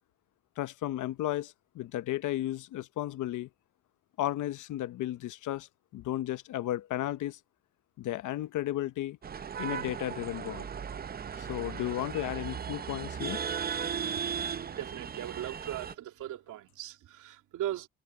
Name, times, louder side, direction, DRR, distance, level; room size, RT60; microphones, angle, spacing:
voice 1, 0.6-3.5 4.2-7.4 8.0-9.2 9.6-10.7 11.4-13.4, left 14 dB, 80° left, 1.0 m, -34 dB
sound 1, 9.2-15.9, right 7 dB, 30° right, 0.6 m, -36 dB
voice 2, 14.8-17.9, right 12 dB, 85° right, 2.7 m, -38 dB
cardioid pair, 90°, 30 cm